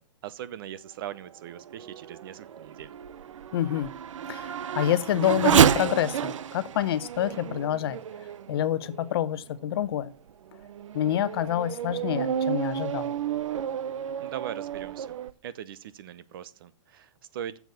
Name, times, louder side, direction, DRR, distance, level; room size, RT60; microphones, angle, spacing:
voice 1, 0.0-2.9 14.2-15.2 15.4-17.6, right 10 dB, 45° right, 0.8 m, -40 dB
Race car auto racing / Accelerating revving vroom, 1.3-9.2 9.8-9.9 10.5-15.3, right 9 dB, 85° right, 0.7 m, -29 dB
voice 2, 3.5-3.9 4.3-8.0 8.5-10.1 10.9-13.1, left 11 dB, 50° left, 0.8 m, -27 dB
7.7 x 7.2 x 8.4 m
hypercardioid pair, 165°, 16 cm